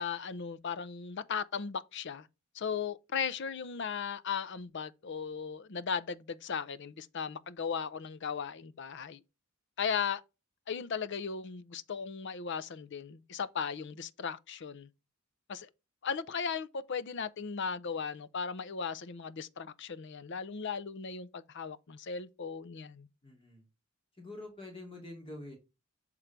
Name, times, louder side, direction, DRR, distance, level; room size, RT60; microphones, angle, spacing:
voice 1, 0.0-2.3 2.5-9.2 9.8-10.2 10.7-14.9 15.5-15.7 16.0-23.1, left 6 dB, 60° left, 0.6 m, -37 dB
voice 2, 23.2-23.6 24.1-25.6, left 2 dB, 25° left, 2.5 m, -46 dB
8.0 x 3.7 x 4.5 m
head